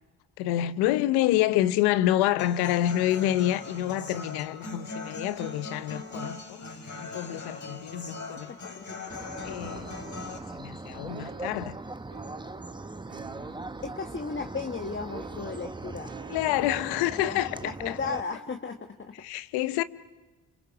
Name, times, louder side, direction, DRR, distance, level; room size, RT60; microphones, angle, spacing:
voice 1, 0.4-6.6 7.0-8.7 9.4-9.9 10.5-11.8 16.3-18.0 19.2-19.8, left 13 dB, 85° left, 0.9 m, -27 dB
Human voice / Acoustic guitar, 2.4-10.4, left 3 dB, 50° left, 5.4 m, -40 dB
voice 2, 8.5-9.0 13.8-16.1 16.7-19.1, left 4 dB, 30° left, 1.5 m, -36 dB
sound 1, 9.1-18.2, right 2 dB, 10° right, 1.2 m, -40 dB
sound 2, 11.1-18.9, right 7 dB, 80° right, 3.2 m, -49 dB
29.5 x 26.5 x 6.0 m
hypercardioid pair, 45°, 37 cm